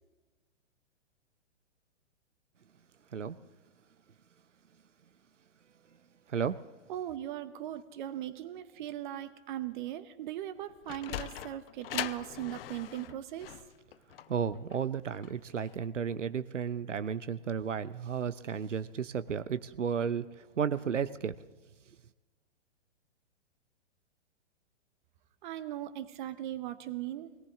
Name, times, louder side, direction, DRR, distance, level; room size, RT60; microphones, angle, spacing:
voice 1, 6.9-13.5 25.4-27.3, right 12 dB, 45° right, 12 dB, 1.0 m, -39 dB
Sliding door, 10.6-15.8, left 12 dB, 55° left, 0.6 m, -41 dB
voice 2, 14.3-21.3, right 7 dB, 90° right, 13 dB, 0.7 m, -33 dB
21.0 x 18.0 x 3.6 m, 1.2 s
figure-of-eight pair, 120°, 36 cm